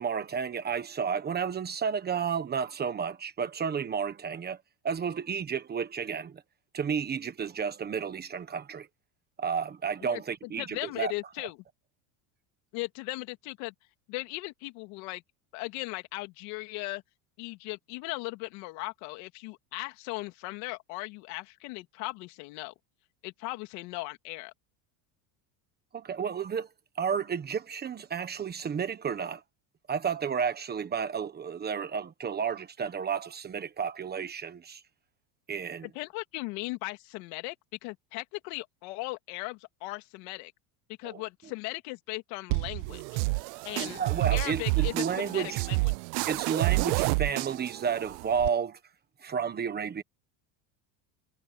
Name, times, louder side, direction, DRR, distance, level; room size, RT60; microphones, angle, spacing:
voice 1, 0.0-4.6 4.8-6.4 6.7-8.9 9.4-11.1 25.9-26.7 27.0-29.4 29.9-34.8 35.5-35.9 41.0-41.2 43.8-45.6 46.2-48.8 49.2-50.0, right 7 dB, 20° right, 1.2 m, -32 dB
voice 2, 10.0-11.6 12.7-13.7 14.1-15.2 15.5-17.0 17.4-22.7 23.2-24.5 35.8-37.5 37.8-40.5 41.0-43.2 43.6-44.0 44.3-45.9, left 23 dB, 70° left, 2.5 m, -38 dB
sound 1, 42.5-48.5, right 27 dB, 85° right, 0.5 m, -29 dB
cardioid pair, 165°, 47 cm